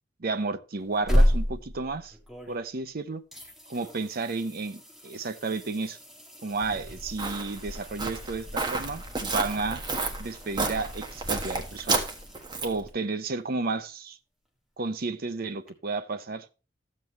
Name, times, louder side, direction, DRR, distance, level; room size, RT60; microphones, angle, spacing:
voice 1, 0.2-2.2 2.5-3.2 3.7-6.0 6.4-9.8 10.2-12.0 12.6-14.2 14.8-16.5, right 3 dB, 55° right, 0.7 m, -32 dB
sound 1, 0.8-2.9 3.3-12.9 15.7-15.8, equal, ahead, 1.7 m, -32 dB
Walk footsteps, 6.6-12.9, right 3 dB, 25° right, 1.4 m, -32 dB
13.5 x 7.6 x 3.1 m
head